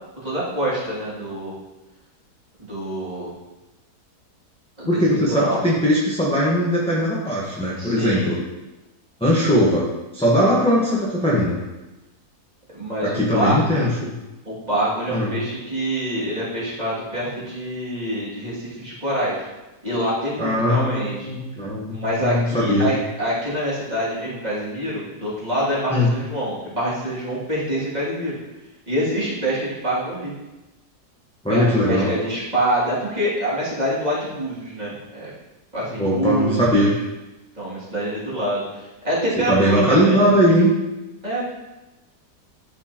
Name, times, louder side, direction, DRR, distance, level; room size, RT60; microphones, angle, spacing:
voice 1, 0.2-1.5 2.6-3.3 4.8-5.6 7.8-8.3 12.8-13.8 14.4-19.5 19.8-21.3 21.9-28.4 28.9-30.3 31.5-35.3 35.7-36.9 37.6-40.3 41.2-41.4, right 1 dB, 25° right, -9 dB, 2.7 m, -26 dB
voice 2, 4.9-8.4 9.2-11.6 13.0-14.1 15.1-15.3 20.4-22.9 25.9-26.1 31.4-32.1 36.0-36.9 39.5-40.7, equal, 5° left, -7 dB, 1.0 m, -20 dB
11.5 x 4.6 x 3.0 m, 1.0 s
omnidirectional pair, 1.8 m